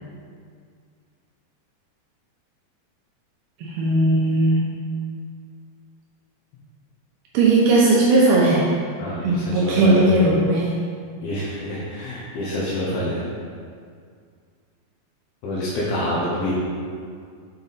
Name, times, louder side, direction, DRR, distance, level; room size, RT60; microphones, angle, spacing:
voice 1, 3.6-4.6 7.3-8.6 9.2-10.7, right 2 dB, 75° right, -5 dB, 2.5 m, -17 dB
voice 2, 9.0-10.1 11.2-13.3 15.4-16.5, equal, 70° left, -6 dB, 2.3 m, -26 dB
7.0 x 5.5 x 4.1 m, 2.1 s
omnidirectional pair, 5.1 m